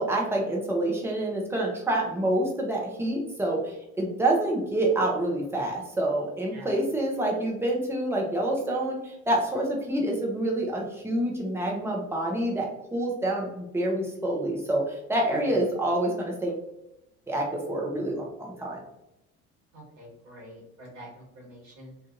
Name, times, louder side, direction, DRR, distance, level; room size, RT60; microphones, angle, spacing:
voice 1, 0.0-16.6 17.3-18.8, right 1 dB, 5° right, -2 dB, 0.7 m, -27 dB
voice 2, 19.7-21.9, equal, 35° right, -4 dB, 1.5 m, -47 dB
3.1 x 2.4 x 2.5 m, 0.87 s
figure-of-eight pair, 65°, 45 cm